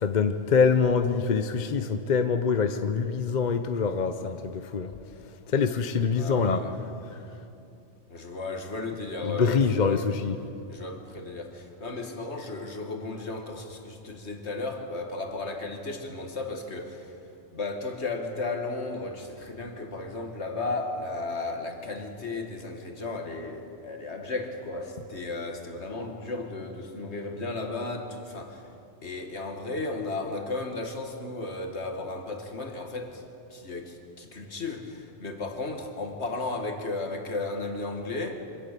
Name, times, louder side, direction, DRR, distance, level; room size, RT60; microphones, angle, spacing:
voice 1, 0.0-4.9 5.5-6.7 9.2-10.4, left 5 dB, 45° left, 8 dB, 0.8 m, -25 dB
voice 2, 6.1-6.7 8.1-10.1 10.7-17.2 17.5-28.7 29.0-33.2 33.5-38.5, left 3 dB, 60° left, 4 dB, 2.2 m, -34 dB
25.0 x 17.0 x 6.8 m, 2.7 s
omnidirectional pair, 1.3 m